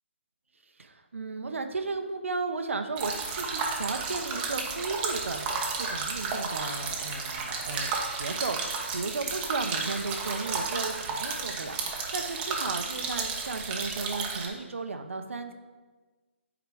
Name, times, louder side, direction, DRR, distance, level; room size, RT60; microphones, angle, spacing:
voice 1, 0.8-5.5 5.8-15.5, right 3 dB, 80° right, 6 dB, 0.8 m, -35 dB
sound 1, 3.0-14.5, right 4 dB, 20° right, 1.0 m, -32 dB
8.4 x 4.9 x 4.9 m, 1.3 s
hypercardioid pair, 150°, 7 cm